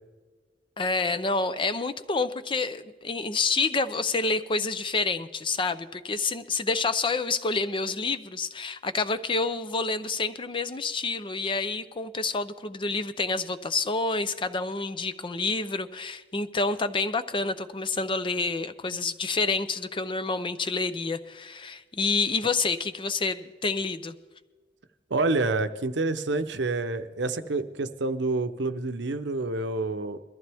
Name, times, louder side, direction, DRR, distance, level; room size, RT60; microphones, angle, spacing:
voice 1, 0.8-24.2, left 3 dB, 25° left, 12 dB, 0.6 m, -28 dB
voice 2, 25.1-30.2, right 3 dB, 65° right, 10 dB, 0.8 m, -28 dB
22.0 x 14.0 x 3.5 m, 1.3 s
head